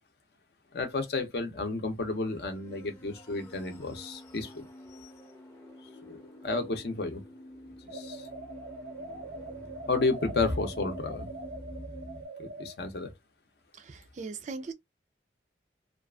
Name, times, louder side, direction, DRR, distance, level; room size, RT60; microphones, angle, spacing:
voice 1, 0.7-4.7 5.0-5.1 6.1-7.2 7.8-8.3 9.9-11.3 12.4-13.1, left 3 dB, 60° left, 0.6 m, -32 dB
sound 1, 2.0-12.3, equal, 15° left, 0.6 m, -48 dB
sound 2, 7.9-12.7, right 2 dB, 80° right, 0.7 m, -43 dB
voice 2, 13.7-14.7, right 4 dB, 40° right, 0.3 m, -39 dB
2.5 x 2.4 x 2.3 m
head